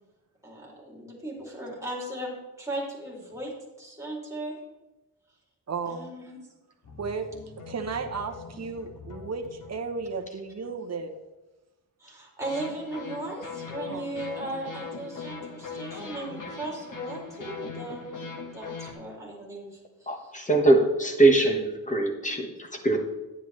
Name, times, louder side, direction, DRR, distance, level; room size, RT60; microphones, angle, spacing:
voice 1, 0.4-3.5 3.8-4.6 5.9-6.4 12.0-20.1, right 1 dB, 10° right, -3 dB, 2.7 m, -37 dB
voice 2, 5.7-6.1 7.0-7.3 7.7-11.1 13.8-14.1, right 4 dB, 40° right, 5 dB, 0.9 m, -34 dB
sound 1, 6.8-10.7 12.4-18.9, left 5 dB, 55° left, 1.5 m, -41 dB
voice 3, 20.1-23.0, right 2 dB, 20° left, 2 dB, 1.3 m, -22 dB
10.0 x 9.8 x 3.2 m, 1.1 s
wide cardioid pair, 145°, 39 cm